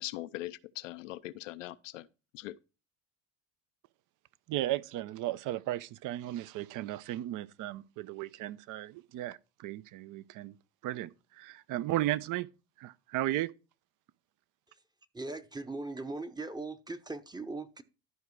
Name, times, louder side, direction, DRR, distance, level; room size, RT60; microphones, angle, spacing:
voice 1, 0.0-2.1 2.3-2.6, left 16 dB, 90° left, 0.6 m, -41 dB
voice 2, 4.5-10.5 10.8-11.1 11.4-12.5 12.8-13.5, right 15 dB, 55° right, 0.7 m, -35 dB
voice 3, 15.1-17.8, right 3 dB, 10° right, 0.8 m, -39 dB
12.0 x 4.9 x 4.5 m
hypercardioid pair, 75°, 37 cm